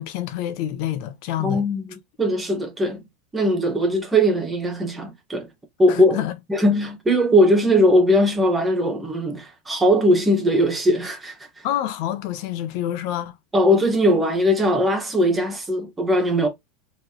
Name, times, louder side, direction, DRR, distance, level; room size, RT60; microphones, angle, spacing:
voice 1, 0.0-1.6 5.9-6.4 11.6-13.4, left 12 dB, 60° left, 0.8 m, -27 dB
voice 2, 1.4-1.8 2.2-3.0 3.3-5.5 5.8-6.2 6.5-11.4 13.5-16.5, equal, 10° right, 1.8 m, -19 dB
4.4 x 3.2 x 3.1 m
supercardioid pair, 145°, 0 cm